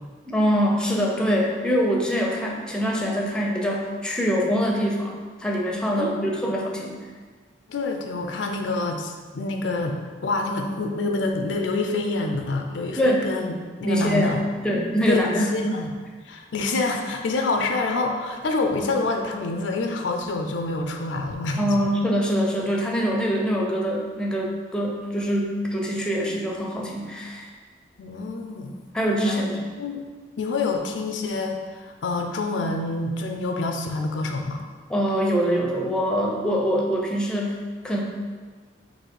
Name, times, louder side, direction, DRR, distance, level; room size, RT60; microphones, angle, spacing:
voice 1, 0.3-7.0 13.0-13.3 13.8-14.4 14.6-15.8 21.6-27.4 28.9-29.7 34.9-38.0, equal, 5° left, -1 dB, 0.5 m, -24 dB
voice 2, 6.0-6.3 7.7-13.5 13.8-14.4 15.1-15.2 15.5-15.9 16.3-21.8 28.0-28.8 29.2-29.5 29.8-30.0 30.4-34.6, left 3 dB, 90° left, 4 dB, 0.5 m, -27 dB
4.0 x 2.6 x 4.6 m, 1.4 s
head